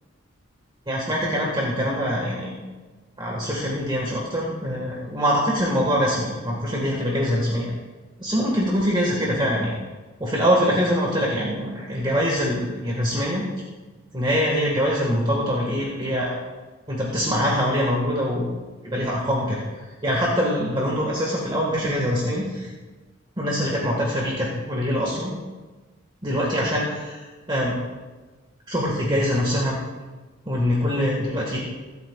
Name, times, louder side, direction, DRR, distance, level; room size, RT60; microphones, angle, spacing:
voice 1, 0.9-2.5 3.2-7.7 8.2-9.7 10.2-13.4 14.1-16.4 16.9-18.5 18.8-19.6 20.0-22.7 23.4-25.3 26.2-27.7 28.7-29.8 30.4-31.6, equal, 25° right, -3 dB, 1.7 m, -24 dB
23.0 x 8.6 x 2.4 m, 1.3 s
head